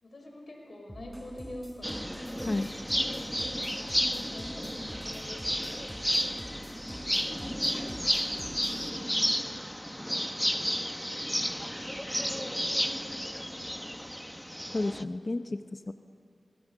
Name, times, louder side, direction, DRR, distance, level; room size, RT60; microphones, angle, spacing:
voice 1, 0.0-2.4 3.7-5.7 11.6-13.7, left 1 dB, 65° left, 0 dB, 5.4 m, -46 dB
sound 1, 0.9-8.9, equal, 10° right, 4.2 m, -48 dB
sound 2, 1.8-15.0, equal, 5° left, 0.9 m, -32 dB
voice 2, 14.7-15.9, left 2 dB, 45° left, 8 dB, 0.7 m, -31 dB
24.0 x 20.0 x 7.2 m, 2.4 s
cardioid pair, 40°, 0 cm